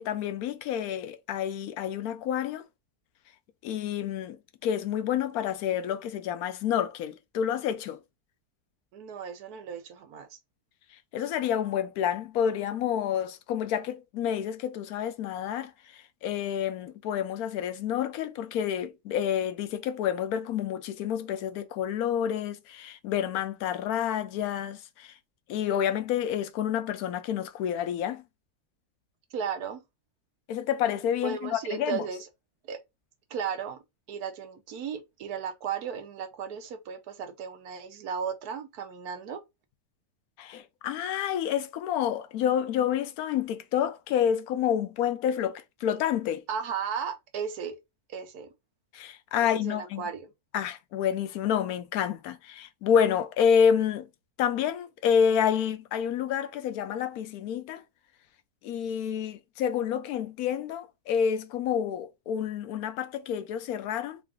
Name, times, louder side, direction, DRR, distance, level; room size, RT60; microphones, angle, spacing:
voice 1, 0.0-2.6 3.6-8.0 11.1-25.1 25.5-28.2 30.5-32.0 40.4-46.4 48.9-50.0 50.5-54.1 54.4-57.8 58.6-64.2, left 8 dB, 75° left, 1.0 m, -29 dB
voice 2, 8.9-10.4 29.3-29.8 31.2-32.3 32.6-32.8 33.3-33.8 34.1-39.4 46.5-47.8 48.1-48.5 49.4-50.3, right 7 dB, 75° right, 1.2 m, -35 dB
3.8 x 2.4 x 3.4 m
omnidirectional pair, 1.7 m